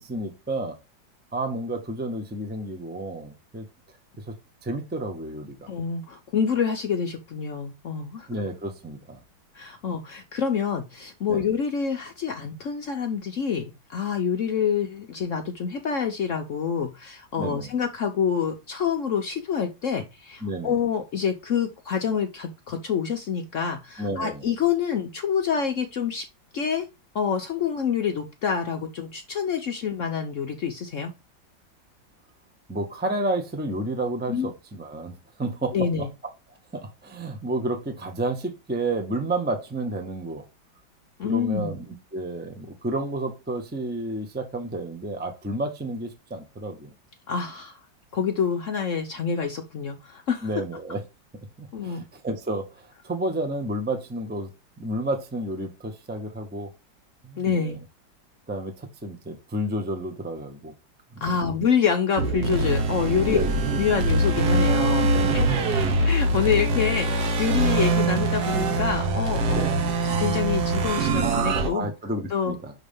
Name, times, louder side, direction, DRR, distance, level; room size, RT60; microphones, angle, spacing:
voice 1, 0.0-0.8 1.3-3.7 4.3-4.4 4.6-5.7 8.3-9.2 11.3-11.4 17.4-17.7 20.4-20.8 24.0-24.4 32.7-35.8 36.7-40.4 41.2-41.8 42.1-46.9 50.4-51.0 51.6-54.5 54.8-56.7 57.2-57.8 58.5-60.7 61.2-61.3 63.3-63.5 65.1-65.7 69.5-69.8 71.7-72.7, right 2 dB, 10° right, 0.5 m, -31 dB
voice 2, 5.7-8.3 9.5-26.3 26.5-26.9 27.1-31.1 34.3-34.5 35.7-36.1 41.2-41.8 47.3-47.8 48.1-50.5 51.7-52.1 57.4-57.8 61.2-63.4 63.8-65.1 65.3-65.4 65.8-69.7 70.2-71.9 72.3-72.6, left 7 dB, 65° left, 0.8 m, -27 dB
sound 1, 62.2-71.7, right 2 dB, 60° right, 1.4 m, -23 dB
6.2 x 3.3 x 5.2 m
omnidirectional pair, 2.1 m